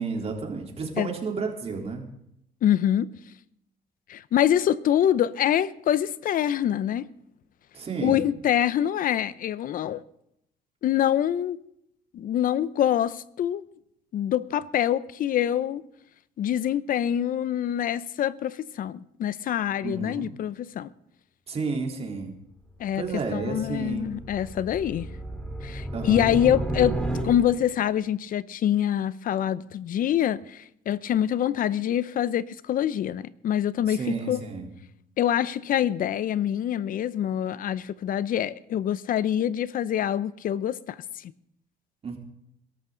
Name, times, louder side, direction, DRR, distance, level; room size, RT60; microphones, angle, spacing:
voice 1, 0.0-2.0 7.7-8.2 19.8-20.3 21.5-22.4 23.0-24.2 25.9-26.4 33.8-34.7 42.0-42.2, right 4 dB, 35° right, 3.6 m, -31 dB
voice 2, 2.6-3.1 4.1-7.1 8.0-10.0 10.8-11.6 12.1-13.6 14.1-15.8 16.4-20.9 22.8-23.0 23.3-25.1 25.6-27.0 27.2-34.4 35.2-41.3, left 10 dB, 55° left, 0.7 m, -25 dB
sound 1, 22.5-27.8, right 1 dB, 5° left, 3.0 m, -33 dB
21.5 x 13.0 x 3.9 m
cardioid pair, 110°, 17 cm